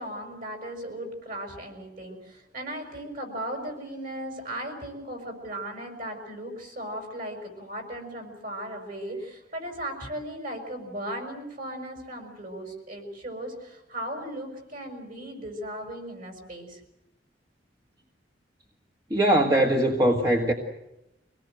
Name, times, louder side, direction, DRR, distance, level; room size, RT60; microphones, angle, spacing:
voice 1, 0.0-16.8, right 1 dB, 50° right, 4 dB, 6.0 m, -37 dB
voice 2, 19.1-20.5, right 1 dB, 20° right, 1 dB, 1.6 m, -21 dB
25.0 x 19.0 x 7.9 m, 0.89 s
head